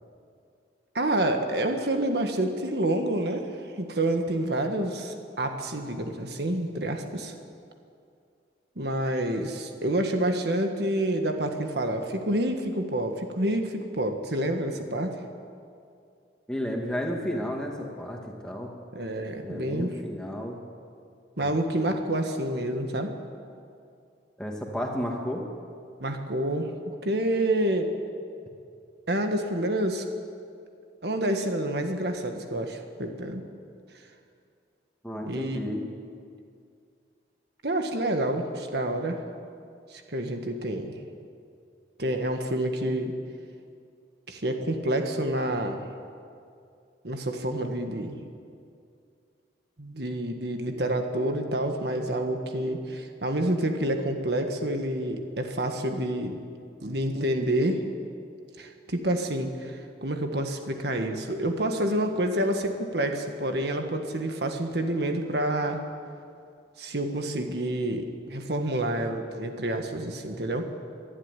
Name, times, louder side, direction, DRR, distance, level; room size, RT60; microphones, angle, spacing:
voice 1, 0.9-3.5 3.8-7.3 8.7-15.2 18.9-19.9 21.4-23.2 26.0-27.9 29.1-30.0 31.0-33.4 35.3-35.9 37.6-39.2 39.9-40.9 42.0-43.1 44.3-45.8 47.0-48.2 49.8-56.4 56.8-57.8 58.6-65.8 66.8-70.7, right 1 dB, 60° right, 5 dB, 1.7 m, -28 dB
voice 2, 16.5-18.7 19.4-20.6 21.4-21.5 24.4-25.4 35.0-35.8, equal, 5° left, 0 dB, 2.3 m, -32 dB
24.0 x 11.5 x 9.9 m, 2.4 s
head